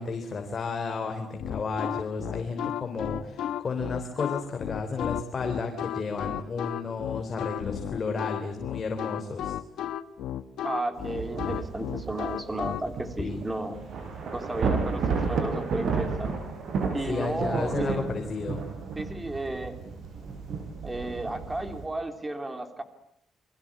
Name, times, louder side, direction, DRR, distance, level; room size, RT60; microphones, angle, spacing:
voice 1, 0.0-9.6 13.2-13.4 17.1-18.6, left 4 dB, 35° left, 5 dB, 3.4 m, -32 dB
sound 1, 1.4-12.8, left 11 dB, 90° left, 1.4 m, -33 dB
voice 2, 10.6-13.8 14.3-16.4 16.9-18.1 19.0-19.8 20.8-22.8, right 2 dB, 15° right, 8 dB, 3.1 m, -33 dB
Thunder / Rain, 11.0-21.9, right 4 dB, 60° right, 7.0 m, -32 dB
29.0 x 23.0 x 8.7 m, 0.71 s
cardioid pair, 150°, 0 cm